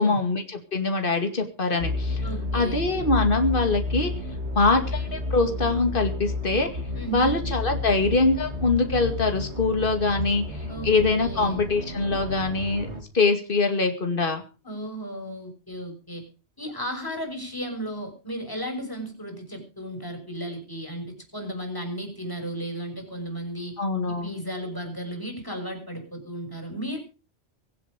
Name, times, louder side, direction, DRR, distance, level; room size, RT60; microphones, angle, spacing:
voice 1, 0.0-2.2 2.5-4.1 4.5-6.7 7.1-12.9 13.1-14.4 23.8-24.3, left 3 dB, 55° left, 5 dB, 2.6 m, -23 dB
sound 1, 1.8-13.0, left 2 dB, 80° right, 2.9 m, -31 dB
voice 2, 2.2-2.9 6.9-7.4 10.7-11.6 14.6-16.2 16.6-23.7 24.1-27.0, equal, 20° left, 4 dB, 6.4 m, -34 dB
24.0 x 8.2 x 5.1 m, 0.35 s
omnidirectional pair, 1.1 m